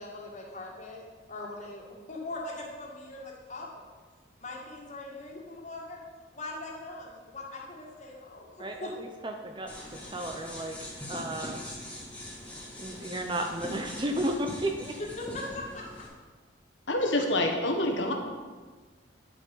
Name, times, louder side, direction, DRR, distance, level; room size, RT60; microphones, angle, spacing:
voice 1, 0.0-3.7 4.4-6.0 6.3-8.9 15.2-16.0, left 2 dB, 40° left, -2 dB, 2.1 m, -41 dB
voice 2, 8.6-10.7 11.1-11.6 12.8-15.0, right 1 dB, 25° right, 3 dB, 0.7 m, -33 dB
sound 1, 9.7-16.1, left 1 dB, 5° left, 1.9 m, -42 dB
voice 3, 16.9-18.1, left 1 dB, 75° left, 3 dB, 1.6 m, -26 dB
10.0 x 7.6 x 5.5 m, 1.4 s
head